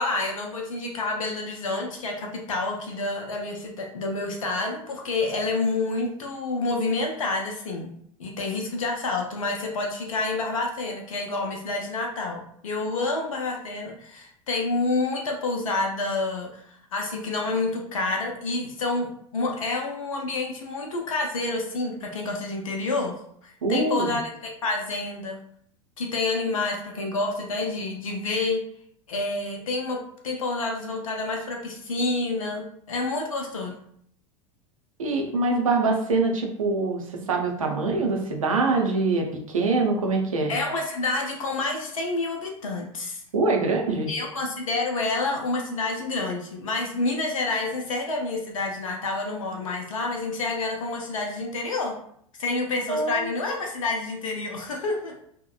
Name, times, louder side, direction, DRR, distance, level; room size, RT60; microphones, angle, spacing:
voice 1, 0.0-7.9 8.2-25.4 26.0-28.6 29.1-33.7 40.5-43.2 44.1-52.0 52.4-55.2, left 3 dB, 75° left, 1 dB, 0.6 m, -28 dB
voice 2, 23.6-24.2 35.0-40.5 43.3-44.1 52.9-53.3, right 3 dB, 75° right, 2 dB, 0.6 m, -24 dB
2.7 x 2.1 x 2.4 m, 0.67 s
figure-of-eight pair, 85°, 18 cm